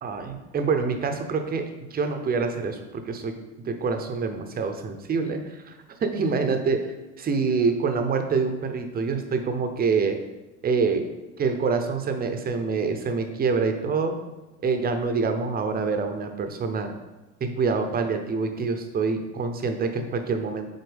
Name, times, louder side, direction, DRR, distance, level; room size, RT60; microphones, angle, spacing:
voice 1, 0.0-1.6 1.9-5.7 6.0-6.9 7.2-10.2 10.6-11.1 11.4-14.1 14.6-16.9 17.4-20.7, right 4 dB, 25° right, 6 dB, 0.8 m, -26 dB
8.0 x 4.0 x 3.5 m, 1.1 s
hypercardioid pair, 100°, 39 cm